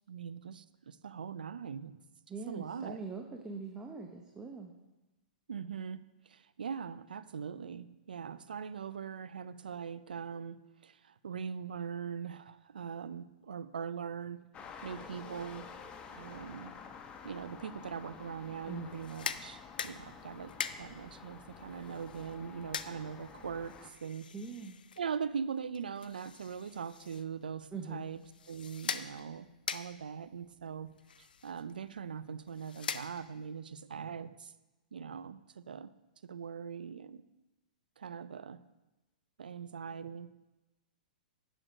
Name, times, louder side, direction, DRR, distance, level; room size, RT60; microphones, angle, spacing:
voice 1, 0.1-2.0 2.3-3.0 5.5-14.4 14.8-15.7 16.1-16.7 17.2-24.3 25.0-28.2 28.5-30.9 31.2-34.5 34.9-35.9 36.2-37.2 38.0-38.6 39.4-40.3, right 7 dB, 80° right, 15 dB, 0.5 m, -41 dB
voice 2, 2.3-4.7 18.7-18.9 24.3-24.8 27.7-28.1, right 4 dB, 15° right, 2 dB, 0.8 m, -42 dB
sound 1, 14.5-23.9, left 6 dB, 25° left, 0.9 m, -50 dB
sound 2, 18.9-33.5, left 7 dB, 80° left, 0.5 m, -44 dB
9.0 x 6.4 x 5.1 m, 1.1 s
hypercardioid pair, 120°, 5 cm